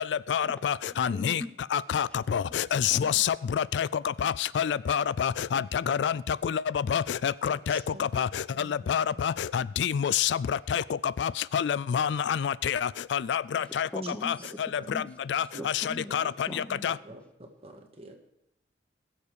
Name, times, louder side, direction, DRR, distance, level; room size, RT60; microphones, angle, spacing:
voice 1, 0.0-1.4 1.7-13.9 14.2-15.0 15.3-17.0, left 8 dB, 75° left, 20 dB, 0.3 m, -28 dB
voice 2, 0.8-1.6 1.9-2.0 2.9-3.2 13.6-14.6 14.8-15.1 15.6-16.9, left 1 dB, 5° left, 6 dB, 0.8 m, -41 dB
voice 3, 7.5-8.1 8.5-8.8 9.1-9.2 13.6-13.7 14.8-14.9 15.5-15.7 16.8-18.1, right 2 dB, 35° right, 2 dB, 1.8 m, -48 dB
20.5 x 7.2 x 4.9 m, 0.87 s
head